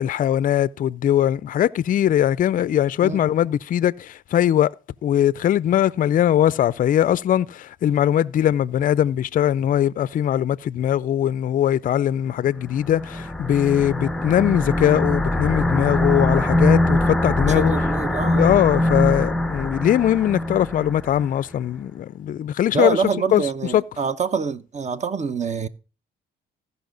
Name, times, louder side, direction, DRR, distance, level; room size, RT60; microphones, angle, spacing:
voice 1, 0.0-4.7 5.0-17.7 18.3-23.0 23.3-23.8, left 11 dB, 45° left, 0.4 m, -21 dB
sound 1, 12.7-21.3, left 1 dB, 5° left, 0.6 m, -22 dB
voice 2, 17.6-18.5 22.7-25.7, right 5 dB, 35° right, 0.8 m, -25 dB
15.0 x 5.5 x 3.8 m
cardioid pair, 90°, 20 cm